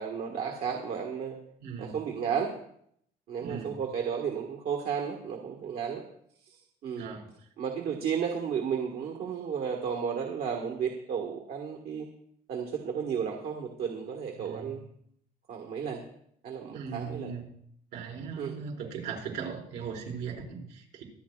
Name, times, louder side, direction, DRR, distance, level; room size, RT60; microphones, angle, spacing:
voice 1, 0.0-1.4 1.8-2.5 3.3-6.0 6.4-6.5 6.8-7.1 7.6-12.1 12.5-14.8 15.5-16.0 16.4-17.3 18.4-18.5, right 7 dB, 65° right, 2 dB, 1.6 m, -33 dB
voice 2, 1.6-2.0 3.4-3.7 6.9-7.3 14.4-14.8 16.7-17.5 17.9-21.0, right 6 dB, 85° right, -1 dB, 4.8 m, -38 dB
25.0 x 9.6 x 2.4 m, 0.70 s
cardioid pair, 110°, 17 cm